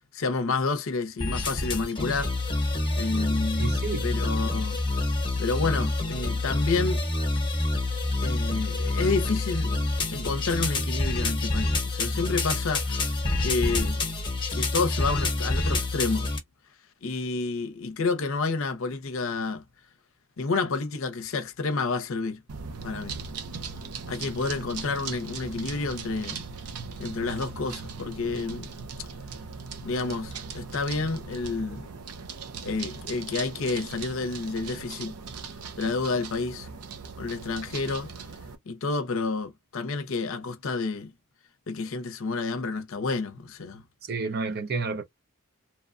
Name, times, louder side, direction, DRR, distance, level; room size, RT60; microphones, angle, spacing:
voice 1, 0.1-2.3 3.0-3.7 4.0-4.8 5.4-7.0 8.2-9.8 10.1-13.1 13.4-14.1 14.5-16.3 17.0-19.6 20.4-22.4 22.8-23.2 24.1-26.4 27.0-28.7 29.8-31.9 32.6-35.1 35.8-36.7 37.2-38.1 38.7-41.1 41.7-43.8, left 4 dB, 60° left, 0.6 m, -29 dB
sound 1, 1.2-16.4, left 2 dB, 20° left, 0.9 m, -27 dB
voice 2, 3.6-4.1 44.1-45.0, right 4 dB, 45° right, 0.5 m, -30 dB
sound 2, 22.5-38.6, right 5 dB, 90° right, 0.6 m, -39 dB
3.0 x 2.1 x 2.5 m
head